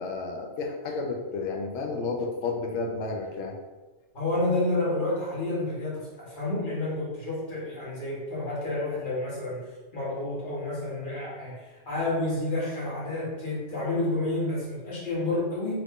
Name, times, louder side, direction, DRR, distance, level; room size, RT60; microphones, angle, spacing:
voice 1, 0.0-3.5, left 3 dB, 70° left, 3 dB, 0.8 m, -31 dB
voice 2, 4.1-9.6 9.9-15.8, left 2 dB, 45° left, -7 dB, 1.2 m, -30 dB
2.9 x 2.5 x 3.5 m, 1.2 s
omnidirectional pair, 1.3 m